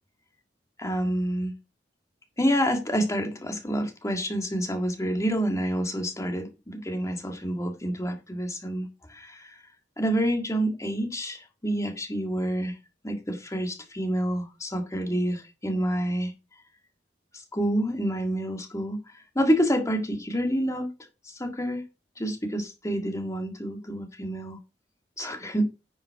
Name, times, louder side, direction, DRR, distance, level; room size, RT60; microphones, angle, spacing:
voice 1, 0.8-1.5 2.4-9.6 10.0-12.7 13.0-16.3 17.3-20.9 21.2-21.8 22.2-24.6 25.2-25.6, equal, 20° left, 1.8 m, -28 dB
10.0 x 5.7 x 4.6 m
head